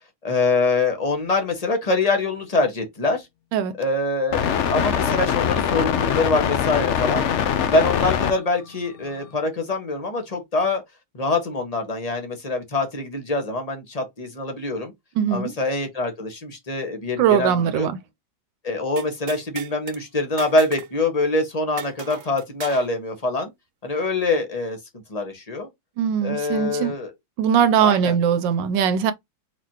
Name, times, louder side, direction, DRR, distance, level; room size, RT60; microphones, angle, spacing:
voice 1, 0.2-3.3 3.8-7.3 7.6-10.8 11.1-14.9 15.3-17.9 18.6-23.5 23.8-24.8 25.1-25.7 26.2-27.1 27.8-28.1, left 3 dB, 20° left, 1.5 m, -24 dB
sound 1, 4.3-8.4 9.1-9.2, left 8 dB, 60° left, 0.8 m, -22 dB
voice 2, 15.2-15.5 17.2-18.0 26.0-26.9 27.4-29.1, right 8 dB, 85° right, 1.3 m, -20 dB
sound 2, 19.0-20.0 20.4-20.9 21.2-21.3 21.8-22.9, right 8 dB, 55° right, 1.0 m, -36 dB
4.4 x 4.2 x 2.8 m
omnidirectional pair, 1.9 m